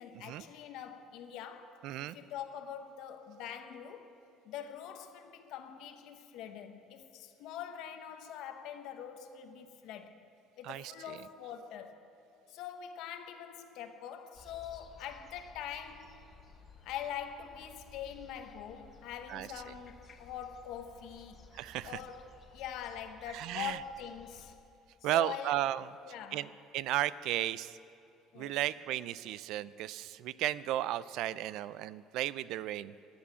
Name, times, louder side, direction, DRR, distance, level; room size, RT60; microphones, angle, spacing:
voice 1, 0.0-4.1 4.4-10.2 10.6-12.1 12.5-16.3 16.8-21.4 21.8-24.5 25.0-25.5 26.0-26.5 28.3-28.6, left 9 dB, 65° left, 0.9 m, -44 dB
voice 2, 1.8-2.2 10.7-11.2 19.3-19.5 21.5-21.9 23.3-23.8 25.0-25.8 26.3-26.5 26.7-27.7 28.4-32.9, right 13 dB, 65° right, 0.4 m, -34 dB
sound 1, 14.3-24.6, left 4 dB, 30° left, 0.9 m, -57 dB
14.0 x 8.7 x 8.3 m
cardioid pair, 150°, 0 cm